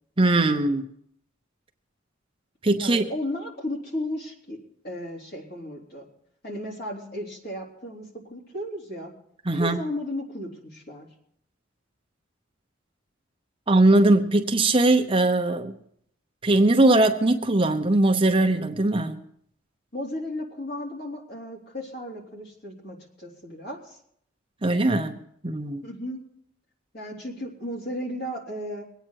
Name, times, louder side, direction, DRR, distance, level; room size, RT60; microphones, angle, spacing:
voice 1, 0.2-0.8 2.6-3.1 9.5-9.8 13.7-15.7 16.4-19.2 24.6-25.2 25.4-25.9, right 2 dB, 25° right, 5 dB, 0.8 m, -20 dB
voice 2, 2.8-4.6 4.8-6.1 6.4-9.1 9.5-11.1 19.9-24.0 25.8-26.2 26.9-28.8, left 1 dB, 50° left, -2 dB, 3.6 m, -34 dB
23.0 x 8.9 x 4.7 m, 0.69 s
head